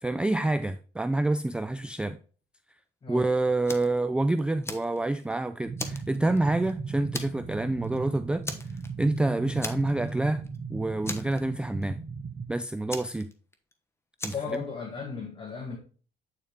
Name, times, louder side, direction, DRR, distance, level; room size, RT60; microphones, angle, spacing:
voice 1, 0.0-2.2 3.1-8.4 9.0-10.4 10.7-12.0 12.5-13.3 14.2-14.6, right 2 dB, 5° right, 0.3 m, -27 dB
Fire, 3.7-4.0 4.4-5.3 5.8-6.7 7.1-7.5 7.8-8.0 8.4-9.2 9.6-10.2 10.4-10.6 11.0-11.8 12.9-13.7 14.2-14.6, left 2 dB, 15° left, 1.0 m, -38 dB
sound 1, 5.6-12.5, right 4 dB, 30° right, 1.1 m, -37 dB
voice 2, 14.3-15.8, left 5 dB, 30° left, 1.5 m, -35 dB
8.6 x 4.4 x 3.6 m
cardioid pair, 110°, 17 cm